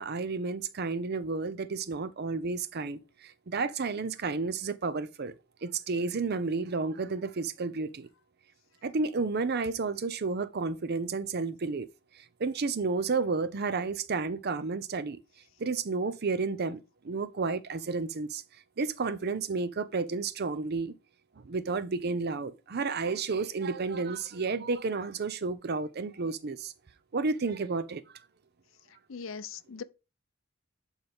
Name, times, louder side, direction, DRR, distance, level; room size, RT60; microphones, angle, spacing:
voice 1, 0.0-5.3 5.6-8.1 8.8-11.9 12.2-15.2 15.6-18.4 18.8-20.9 21.4-26.7 27.1-28.0, right 4 dB, 55° right, 0.6 m, -31 dB
voice 2, 29.1-29.8, left 5 dB, 75° left, 0.6 m, -40 dB
11.0 x 4.0 x 3.5 m
head